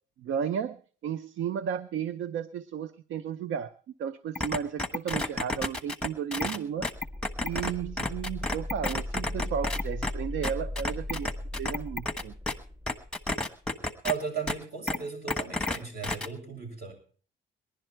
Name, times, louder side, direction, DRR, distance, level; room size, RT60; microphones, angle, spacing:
voice 1, 0.2-3.7 4.0-6.9 7.4-11.3 11.6-12.3, right 8 dB, 75° right, 15 dB, 0.7 m, -33 dB
sound 1, 4.4-7.7 8.0-10.1 10.4-12.5 12.9-14.1 14.5-14.6 14.9-15.0 15.3-15.8 16.0-16.3, left 2 dB, 5° left, 1.2 m, -30 dB
sound 2, 6.8-13.4, left 1 dB, 15° right, 1.0 m, -38 dB
voice 2, 14.0-16.9, right 6 dB, 55° right, 1 dB, 7.5 m, -35 dB
20.5 x 11.5 x 4.5 m, 0.42 s
cardioid pair, 90°, 20 cm